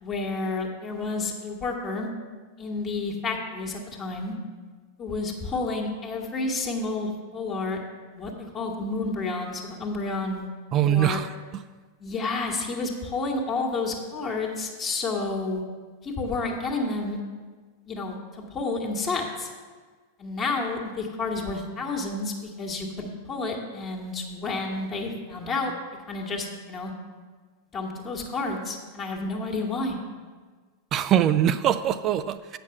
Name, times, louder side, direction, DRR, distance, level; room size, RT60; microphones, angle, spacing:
voice 1, 0.0-2.1 2.6-4.3 5.0-7.8 8.1-10.5 10.8-11.2 12.0-15.6 16.0-17.2 17.9-19.5 20.2-25.7 26.1-26.9 27.7-30.0, left 3 dB, 25° left, 0 dB, 1.4 m, -30 dB
voice 2, 10.7-11.3 30.9-32.6, right 10 dB, 30° right, 13 dB, 0.3 m, -22 dB
8.4 x 6.0 x 6.7 m, 1.4 s
figure-of-eight pair, 90°, 0 cm